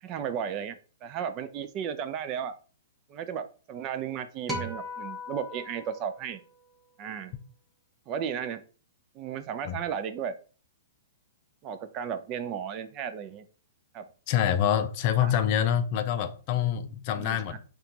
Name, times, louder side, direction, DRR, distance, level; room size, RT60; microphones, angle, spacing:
voice 1, 0.0-2.5 3.1-6.4 7.0-7.3 8.1-8.6 9.2-10.4 11.6-13.4 13.9-14.1 15.2-15.3 17.2-17.6, right 8 dB, 30° right, 0.4 m, -34 dB
sound 1, 4.5-7.0, left 1 dB, 10° right, 0.9 m, -38 dB
voice 2, 14.3-17.6, left 9 dB, 40° left, 0.4 m, -26 dB
4.3 x 2.3 x 3.8 m
hypercardioid pair, 140°, 0 cm